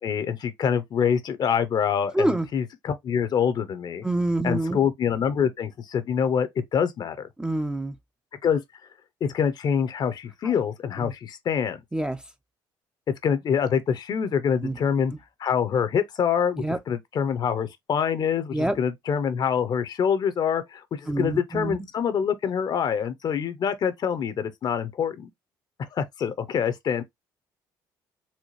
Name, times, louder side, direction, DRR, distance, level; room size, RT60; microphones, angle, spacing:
voice 1, 0.0-4.0 4.4-7.3 8.4-8.6 9.2-11.8 13.2-15.1 15.4-25.3 25.9-27.0, left 7 dB, 50° left, 0.6 m, -25 dB
voice 2, 2.1-2.5 4.0-4.8 7.4-7.9 10.4-10.5 11.0-11.1 11.9-12.2 14.6-14.8 16.6-16.8 18.5-18.8 21.1-21.8, right 1 dB, 10° right, 0.4 m, -26 dB
4.2 x 2.2 x 3.0 m
supercardioid pair, 80°, 9 cm